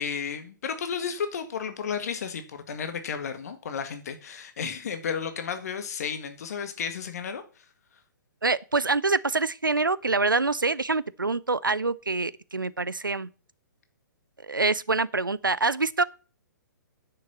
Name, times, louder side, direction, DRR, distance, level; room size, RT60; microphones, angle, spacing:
voice 1, 0.0-7.7, left 6 dB, 50° left, 1.7 m, -33 dB
voice 2, 8.4-13.3 14.5-16.0, right 3 dB, 80° right, 0.7 m, -25 dB
10.0 x 6.4 x 7.3 m
figure-of-eight pair, 120°, 11 cm